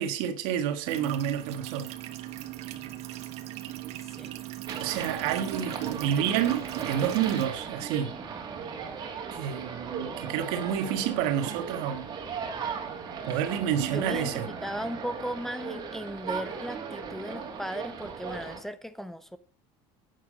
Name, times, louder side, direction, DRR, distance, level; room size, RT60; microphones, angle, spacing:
voice 1, 0.0-1.9 4.8-8.1 9.3-12.1 13.2-14.5, right 9 dB, 85° right, 1.7 m, -29 dB
sound 1, 0.9-7.5, right 14 dB, 55° right, 1.4 m, -39 dB
sound 2, 4.7-18.6, right 6 dB, 35° right, 2.6 m, -37 dB
voice 2, 13.9-19.4, equal, 5° left, 0.6 m, -36 dB
10.5 x 8.6 x 5.1 m
cardioid pair, 150°, 13 cm